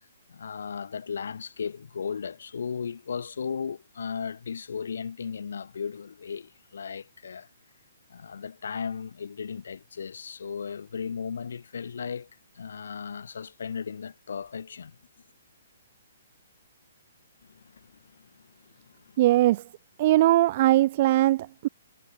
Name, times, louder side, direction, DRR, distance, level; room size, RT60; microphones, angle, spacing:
voice 1, 0.3-7.5 8.1-12.3 12.5-14.9 17.5-19.2, left 6 dB, 70° left, 1.1 m, -36 dB
voice 2, 19.2-19.6 20.0-21.7, right 15 dB, 45° right, 0.7 m, -20 dB
hypercardioid pair, 130°, 0 cm